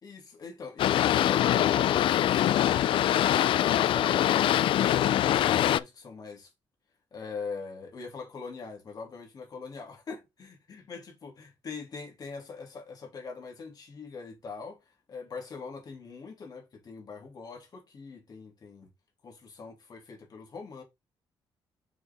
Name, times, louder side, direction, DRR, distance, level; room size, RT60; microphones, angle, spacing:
voice 1, 0.0-3.0 3.2-4.3 4.8-6.5 7.1-18.9 19.2-20.8, left 4 dB, 45° left, 2.6 m, -42 dB
Boat Water vehicle, 0.8-5.8, left 11 dB, 70° left, 0.4 m, -23 dB
5.7 x 5.0 x 3.5 m
cardioid pair, 110°, 9 cm